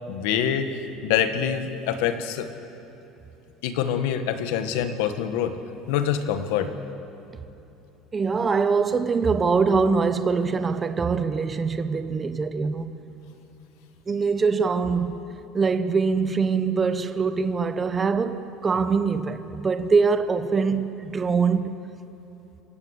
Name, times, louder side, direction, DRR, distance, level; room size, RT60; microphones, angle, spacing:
voice 1, 0.1-2.5 3.6-5.6 5.9-6.7, left 9 dB, 85° left, 1.6 m, -25 dB
voice 2, 8.1-12.9 14.1-15.2 15.5-21.7, right 5 dB, 20° right, 0.8 m, -23 dB
27.5 x 15.5 x 8.3 m
cardioid pair, 160°, 0 cm